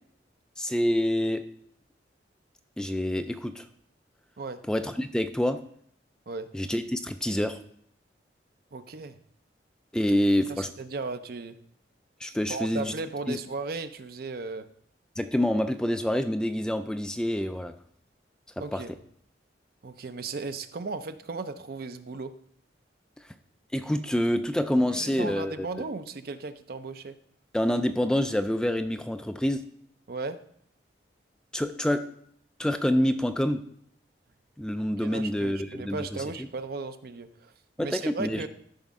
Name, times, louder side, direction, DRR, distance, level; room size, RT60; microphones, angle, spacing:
voice 1, 0.6-1.4 2.8-3.7 4.7-5.6 6.5-7.6 9.9-10.7 12.2-12.9 13.3-13.4 15.2-17.7 18.7-18.8 23.7-25.7 27.5-29.6 31.5-32.0 32.6-33.6 34.6-36.2 37.8-38.5, left 1 dB, 5° left, 8 dB, 0.3 m, -27 dB
voice 2, 8.7-9.2 10.5-11.6 12.5-14.7 18.6-18.9 19.8-22.3 24.9-27.2 30.1-30.4 35.0-37.5 37.8-38.5, right 3 dB, 55° right, 10 dB, 0.5 m, -36 dB
13.0 x 5.3 x 3.6 m, 0.65 s
head